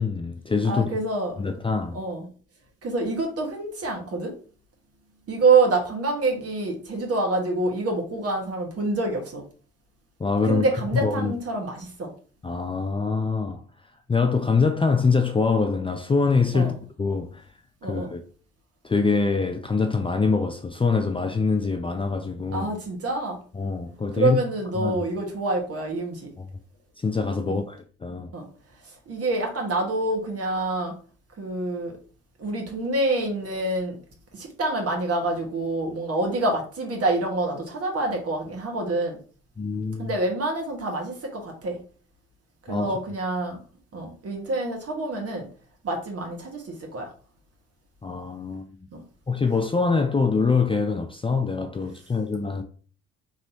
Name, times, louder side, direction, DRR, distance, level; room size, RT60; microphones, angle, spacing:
voice 1, 0.0-0.9 1.4-2.0 10.2-10.6 11.0-11.3 12.4-13.6 14.1-17.4 17.8-18.2 18.8-22.7 23.6-24.4 24.8-25.0 26.4-26.5 27.0-28.3 39.6-40.1 42.7-42.9 48.0-48.7 49.3-52.6, left 4 dB, 15° left, 0.4 m, -24 dB
voice 2, 0.6-1.5 1.9-2.3 2.8-4.3 5.3-9.4 10.5-12.1 16.5-16.7 17.8-18.1 22.5-23.4 24.1-26.3 27.4-27.6 28.3-28.4 29.1-30.9 31.4-31.9 32.4-34.0 34.3-39.2 40.0-41.8 42.7-43.6 43.9-45.5 45.8-47.1 48.9-49.0, right 2 dB, 45° right, 1.5 m, -26 dB
4.2 x 3.1 x 2.7 m
hypercardioid pair, 50°, 32 cm